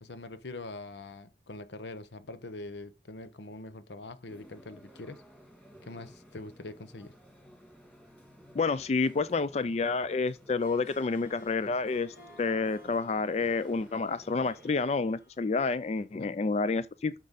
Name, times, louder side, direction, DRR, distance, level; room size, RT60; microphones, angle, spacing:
voice 1, 0.0-5.2 5.8-7.1 16.2-16.3, left 2 dB, 80° left, 0.8 m, -43 dB
sound 1, 4.3-14.7, equal, 10° left, 2.5 m, -55 dB
voice 2, 8.5-17.1, left 4 dB, 35° left, 0.4 m, -29 dB
Harp, 10.5-15.9, equal, 55° left, 6.1 m, -56 dB
9.6 x 6.6 x 4.1 m
head